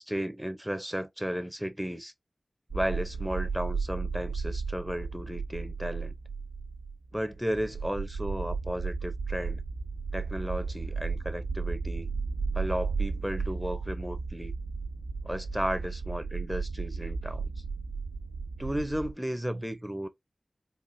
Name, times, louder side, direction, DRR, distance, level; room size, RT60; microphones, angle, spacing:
voice 1, 0.0-2.1 2.7-6.1 7.1-9.6 10.1-12.1 12.5-14.5 15.2-17.5 18.6-20.1, equal, 5° right, 0.6 m, -34 dB
sound 1, 2.7-19.1, right 4 dB, 85° right, 1.1 m, -34 dB
4.0 x 2.5 x 2.5 m
wide cardioid pair, 45°, 0 cm